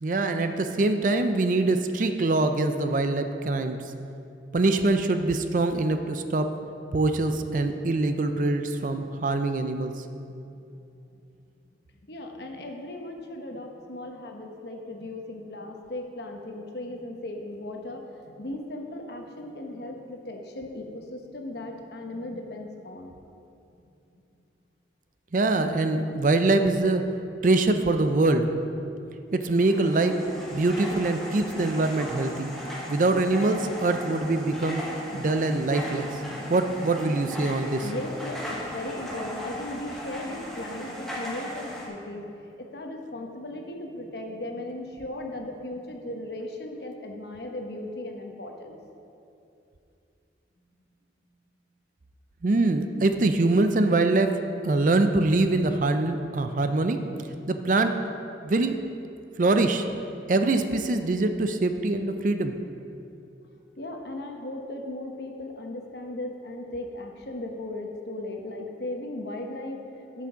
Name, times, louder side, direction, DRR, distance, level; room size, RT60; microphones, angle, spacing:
voice 1, 0.0-3.8 4.5-6.5 6.9-10.0 25.3-27.0 27.4-28.5 29.3-30.2 30.5-32.5 32.9-34.8 35.1-36.1 36.5-37.8 52.4-54.4 54.6-57.0 57.5-58.0 58.4-58.8 59.4-59.9 60.3-62.5, right 2 dB, 45° right, 8 dB, 0.5 m, -24 dB
voice 2, 12.0-23.2 32.4-32.6 37.8-42.3 42.6-48.8 63.8-70.3, left 1 dB, 60° left, 2 dB, 1.0 m, -37 dB
sound 1, 29.5-41.9, equal, ahead, 1.3 m, -37 dB
9.7 x 6.1 x 5.7 m, 2.7 s
head